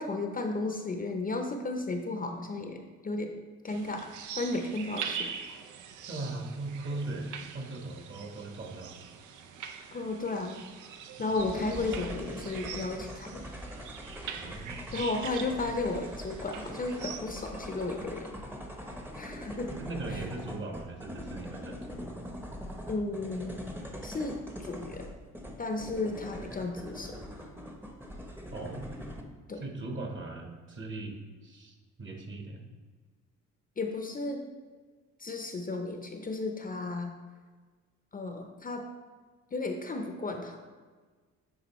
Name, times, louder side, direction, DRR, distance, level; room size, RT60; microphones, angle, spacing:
voice 1, 0.0-3.3 3.6-4.1 4.4-5.3 9.9-10.6 11.2-13.4 14.9-18.3 19.1-19.7 20.1-20.2 22.9-23.6 24.0-25.1 25.6-27.2 29.5-29.6 33.8-34.4 35.2-37.1 38.1-38.8 39.5-40.6, left 3 dB, 30° left, 4 dB, 0.6 m, -34 dB
sound 1, 3.7-17.2, right 7 dB, 80° right, 0.6 m, -43 dB
voice 2, 6.1-9.0 9.3-9.4 9.8-10.0 14.4-14.9 19.7-22.2 28.5-28.9 29.5-32.6, right 2 dB, 40° right, 2 dB, 1.3 m, -39 dB
sound 2, 11.3-29.2, equal, 5° right, 0.8 m, -42 dB
9.1 x 3.8 x 3.1 m, 1.4 s
cardioid pair, 90°, 30 cm